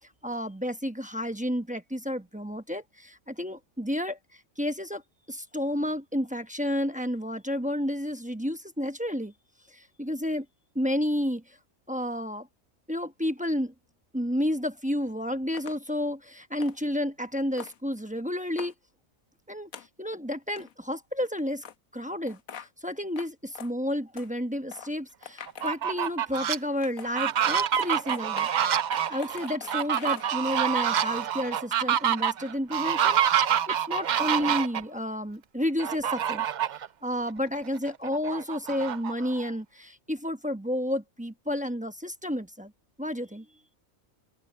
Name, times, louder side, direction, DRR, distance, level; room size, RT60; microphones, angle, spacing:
voice 1, 0.2-5.0 5.3-9.3 9.7-10.5 10.7-11.6 11.9-12.5 12.9-13.7 14.1-18.7 19.5-19.7 20.0-21.6 21.9-28.5 29.1-36.4 37.0-42.7 43.0-43.5, left 1 dB, 5° right, 0.8 m, -31 dB
sound 1, 15.5-15.8 16.6-16.8 17.6-17.8 18.6-18.7 19.7-19.9 20.5-20.7 21.6-21.7 22.3-22.7 23.2-23.3 23.6-23.7 24.2-24.3 24.7-24.9 25.2-26.5 26.8-30.6, left 8 dB, 85° left, 1.4 m, -43 dB
Fowl, 25.5-26.6 27.0-34.8 35.8-36.9 37.3-37.4 37.8-39.5, right 9 dB, 65° right, 0.4 m, -27 dB
open air
omnidirectional pair, 1.4 m